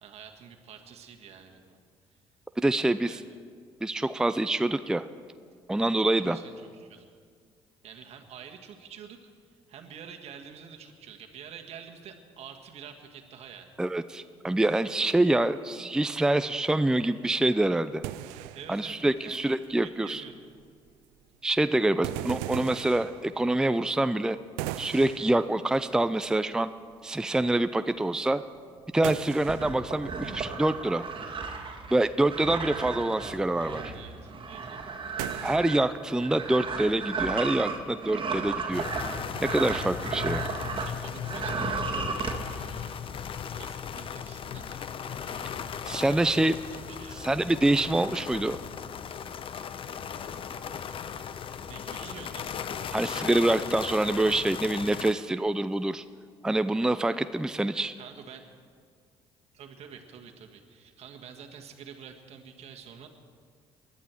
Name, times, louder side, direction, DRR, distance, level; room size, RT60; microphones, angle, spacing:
voice 1, 0.0-1.8 3.1-3.2 6.1-7.1 7.8-9.3 9.7-13.7 18.5-20.4 32.5-32.7 33.9-34.8 40.8-43.0 43.4-45.7 46.0-47.3 51.2-51.4 51.7-52.5 58.0-58.5 59.5-63.1, right 7 dB, 60° right, 4 dB, 1.6 m, -48 dB
voice 2, 2.6-3.2 3.8-5.1 5.7-6.4 13.8-18.0 18.7-20.2 21.4-24.4 24.8-26.7 27.0-28.4 28.9-31.1 31.9-33.9 35.4-38.9 39.5-40.4 45.8-46.5 47.2-48.6 52.9-56.0 56.4-57.9, right 1 dB, 5° right, 11 dB, 0.5 m, -26 dB
sound 1, 16.5-16.7 17.0-17.1 17.3-19.9 20.2-21.2 21.9-24.2 24.6-26.3 26.6-27.0 27.3-30.7 31.0-31.7 32.3-35.6, right 14 dB, 85° right, 0.5 m, -40 dB
sound 2, 29.5-40.9 41.2-42.4, right 4 dB, 45° right, 1.9 m, -34 dB
sound 3, 38.7-55.1, left 8 dB, 50° left, 0.7 m, -37 dB
20.0 x 12.0 x 4.5 m, 2.1 s
supercardioid pair, 65°, 12 cm